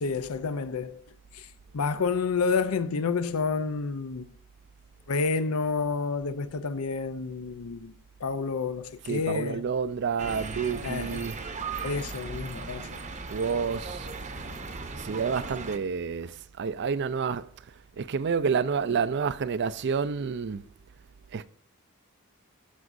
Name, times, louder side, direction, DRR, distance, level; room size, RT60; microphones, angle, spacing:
voice 1, 0.0-1.0 1.3-1.5 1.7-4.3 5.1-9.6 10.8-11.3 11.8-13.0, left 4 dB, 70° left, 0.6 m, -29 dB
voice 2, 9.0-11.4 13.3-14.1 14.9-17.5 18.0-20.6 21.3-21.5, right 6 dB, 50° right, 0.4 m, -29 dB
sound 1, 10.2-15.8, right 4 dB, 35° right, 0.8 m, -37 dB
14.0 x 6.1 x 2.6 m
head